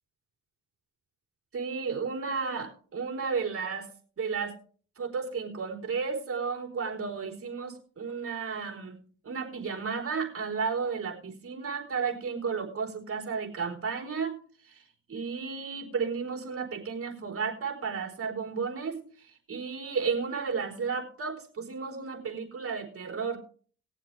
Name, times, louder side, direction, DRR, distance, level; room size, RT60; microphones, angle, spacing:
voice 1, 1.5-3.9 4.2-4.6 5.0-9.0 9.2-14.4 14.6-14.8 15.1-23.4, right 5 dB, 50° right, 2 dB, 3.9 m, -33 dB
20.5 x 7.4 x 3.3 m, 0.41 s
cardioid pair, 90°, 30 cm